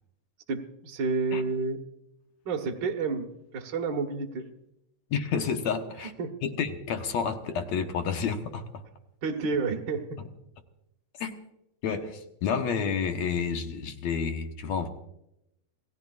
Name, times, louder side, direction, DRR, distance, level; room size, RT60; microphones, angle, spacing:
voice 1, 0.5-1.8 2.4-4.5 6.2-6.4 9.2-10.2, right 4 dB, 55° right, 3 dB, 1.2 m, -30 dB
voice 2, 5.1-6.1 6.4-8.8 11.2-11.3 11.8-14.9, left 6 dB, 65° left, 5 dB, 2.1 m, -30 dB
27.5 x 17.5 x 2.5 m, 0.83 s
omnidirectional pair, 3.9 m